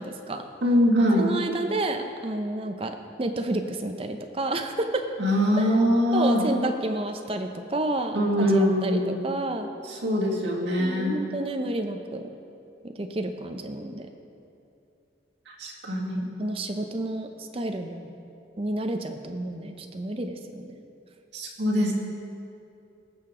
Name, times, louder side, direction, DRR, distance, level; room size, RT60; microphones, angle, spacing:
voice 1, 0.0-0.5 1.2-5.0 5.6-5.7 6.1-9.7 10.8-12.3 12.8-14.1 16.4-18.1 18.6-20.7, right 2 dB, 30° right, 6 dB, 0.6 m, -30 dB
voice 2, 0.6-1.3 5.2-6.5 8.1-9.1 9.9-11.2 15.5-16.3 21.3-21.9, equal, 75° right, -4 dB, 2.0 m, -23 dB
18.0 x 6.7 x 3.7 m, 2.7 s
head